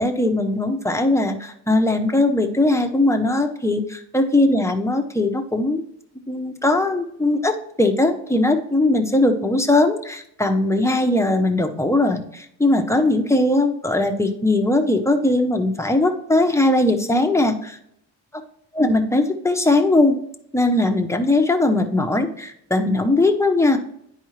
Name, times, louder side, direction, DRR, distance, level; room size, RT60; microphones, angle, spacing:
voice 1, 0.0-5.8 6.3-17.8 18.7-20.2 20.5-23.8, left 2 dB, 5° left, 5 dB, 0.8 m, -19 dB
9.9 x 4.8 x 3.2 m, 0.73 s
cardioid pair, 100°, 43 cm